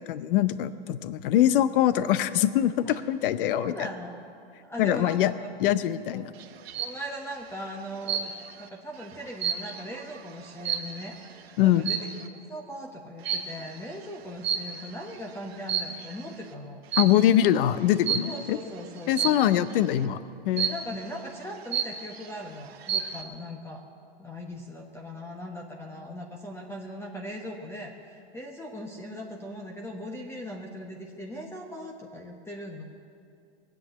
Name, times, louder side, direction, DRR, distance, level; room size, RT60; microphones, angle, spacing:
voice 1, 0.0-3.9 4.8-5.3 5.6-6.3 11.6-11.9 17.0-18.6 19.1-20.2 20.5-20.7, left 12 dB, 60° left, 14 dB, 0.8 m, -23 dB
voice 2, 3.5-4.2 4.6-5.5 6.1-6.2 6.8-8.3 8.6-12.0 12.3-16.8 18.2-19.4 20.5-23.8 24.2-32.8, equal, 10° left, 0 dB, 1.1 m, -39 dB
sound 1, 6.4-7.0 8.1-8.6 9.0-11.2 11.8-12.2 13.2-13.6 14.4-15.0 15.5-16.2 16.9-17.3 18.1-18.5 19.2-19.6 20.6-21.0 21.4-21.5 21.7-22.3 22.7-23.2, right 8 dB, 75° right, 1.2 m, -30 dB
19.0 x 8.0 x 9.0 m, 2.4 s
hypercardioid pair, 125°, 31 cm